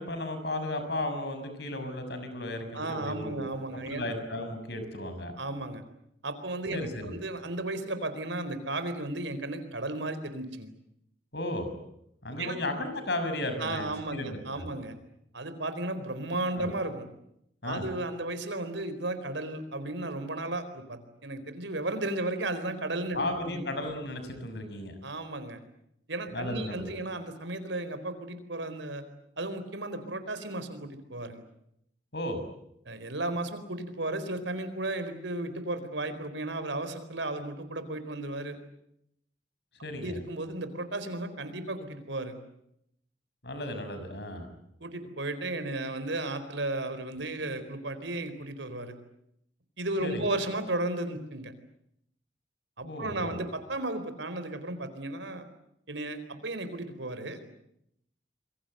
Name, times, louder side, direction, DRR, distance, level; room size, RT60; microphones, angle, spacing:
voice 1, 0.0-3.5 3.7-5.4 6.7-7.2 11.3-11.7 12.2-14.7 16.5-16.7 17.6-17.8 23.1-25.0 26.3-27.0 32.1-32.4 39.8-40.2 43.4-44.5 50.0-50.3 52.8-53.4, left 1 dB, 65° left, 8 dB, 6.4 m, -35 dB
voice 2, 2.7-4.0 5.4-5.8 6.2-10.7 12.4-12.6 13.6-14.9 15.3-17.1 17.6-23.2 23.5-23.7 25.0-25.6 26.1-29.0 29.4-31.4 32.9-38.6 40.0-42.4 44.8-48.9 49.8-51.5 52.8-55.5 55.9-57.4, right 2 dB, 85° right, 11 dB, 4.3 m, -34 dB
27.5 x 23.0 x 8.0 m, 0.77 s
head